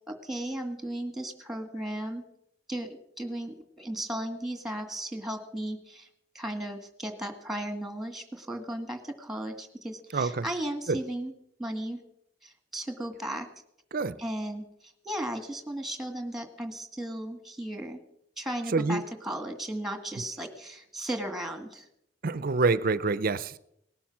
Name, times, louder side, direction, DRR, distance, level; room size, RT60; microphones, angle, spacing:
voice 1, 0.1-2.2 2.7-6.1 6.3-11.3 11.6-12.0 12.4-13.5 14.2-18.0 18.4-21.9, right 1 dB, ahead, 1.9 m, -35 dB
voice 2, 10.1-10.4 10.9-11.0 13.9-14.2 18.7-19.0 22.2-23.6, right 3 dB, 50° right, 0.6 m, -26 dB
19.0 x 11.5 x 6.1 m
head